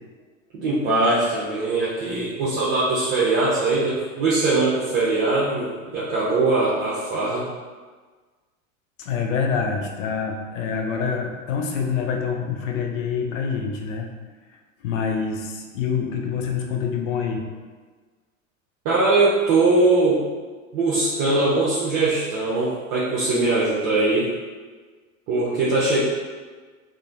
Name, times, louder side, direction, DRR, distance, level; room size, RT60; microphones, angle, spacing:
voice 1, 0.5-7.5 18.8-20.2 20.7-24.3 25.3-26.0, right 2 dB, 50° right, -8 dB, 0.7 m, -21 dB
voice 2, 9.0-14.1 14.8-17.5, left 6 dB, 70° left, 2 dB, 0.5 m, -26 dB
3.1 x 2.1 x 2.5 m, 1.4 s
figure-of-eight pair, 80°, 41 cm